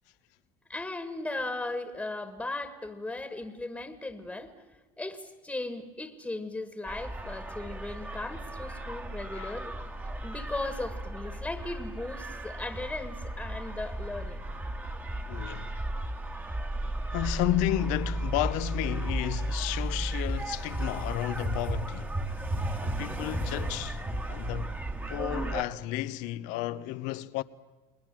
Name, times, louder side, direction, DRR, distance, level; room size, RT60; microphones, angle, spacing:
voice 1, 0.7-4.5 5.0-9.8 10.2-14.4, left 2 dB, 5° left, 1.8 m, -37 dB
sound 1, 6.9-25.6, right 1 dB, 15° right, 1.7 m, -34 dB
voice 2, 15.3-15.7 17.1-22.2 22.8-24.0 24.3-24.7 25.1-27.4, left 15 dB, 70° left, 0.9 m, -32 dB
30.0 x 20.5 x 7.7 m
supercardioid pair, 120°, 13 cm